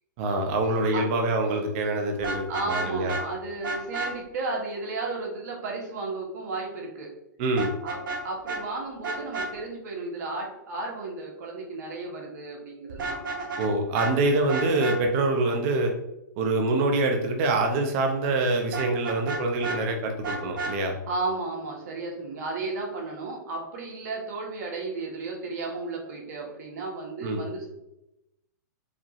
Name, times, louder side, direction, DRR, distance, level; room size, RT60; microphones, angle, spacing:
voice 1, 0.2-3.1 7.4-7.7 13.6-15.9 16.4-21.0 27.2-27.5, right 2 dB, 40° right, 3 dB, 0.9 m, -25 dB
Vehicle horn car horn honking, 2.2-3.2 3.6-4.1 7.6-8.2 8.5-8.6 9.0-9.5 12.9-13.7 13.9-14.1 14.5-15.0 18.7-19.8 20.2-20.7, right 3 dB, 80° right, 1.1 m, -31 dB
voice 2, 2.5-7.1 7.8-8.0 8.2-13.2 21.1-27.7, right 3 dB, 60° right, -1 dB, 1.5 m, -33 dB
5.0 x 2.7 x 3.1 m, 0.88 s
hypercardioid pair, 140°, 11 cm